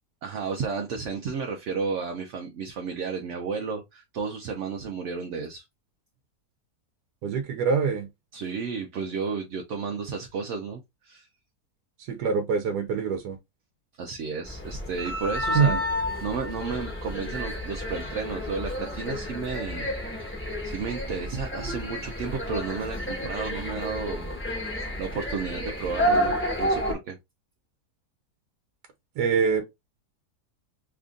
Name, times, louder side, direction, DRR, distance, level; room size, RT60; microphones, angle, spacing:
voice 1, 0.2-5.6 8.3-11.3 14.0-15.8 16.2-19.9 20.6-27.2, right 5 dB, 65° right, 0.8 m, -33 dB
voice 2, 7.2-8.1 12.1-13.4 15.5-15.8 29.2-29.8, right 6 dB, 85° right, 1.3 m, -24 dB
sound 1, 14.4-26.9, equal, 10° left, 0.9 m, -30 dB
3.4 x 2.5 x 3.6 m
omnidirectional pair, 1.7 m